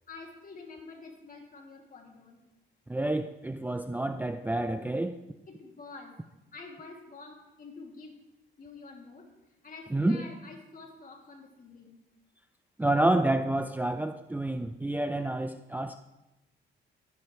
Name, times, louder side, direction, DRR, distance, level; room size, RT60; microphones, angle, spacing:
voice 1, 0.1-2.4 5.5-6.2 6.5-8.2 8.6-9.3 9.6-12.0, left 3 dB, 45° left, 1 dB, 2.7 m, -47 dB
voice 2, 2.9-5.2 9.9-10.2 12.8-16.0, right 1 dB, 10° right, 8 dB, 0.5 m, -28 dB
15.5 x 10.5 x 3.3 m, 0.95 s
cardioid pair, 90°, 20 cm